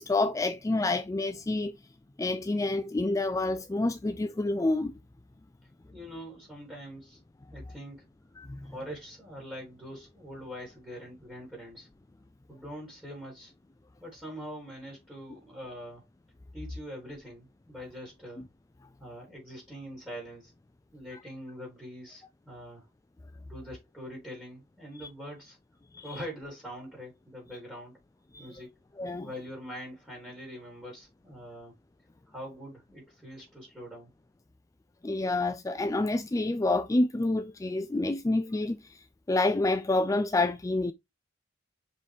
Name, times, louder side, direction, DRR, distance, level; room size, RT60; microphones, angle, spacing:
voice 1, 0.0-1.8 2.2-4.9 8.4-8.7 25.0-25.1 25.9-26.2 28.3-28.5 29.0-29.3 35.0-40.9, left 2 dB, 20° left, 0.4 m, -28 dB
voice 2, 5.9-7.2 7.5-8.1 8.6-11.9 12.5-13.5 14.0-16.0 16.5-18.4 19.0-20.5 20.9-22.9 23.4-25.6 26.0-28.0 28.4-28.7 29.2-31.7 32.3-34.1, equal, 5° right, 3.9 m, -43 dB
6.4 x 5.3 x 3.5 m
head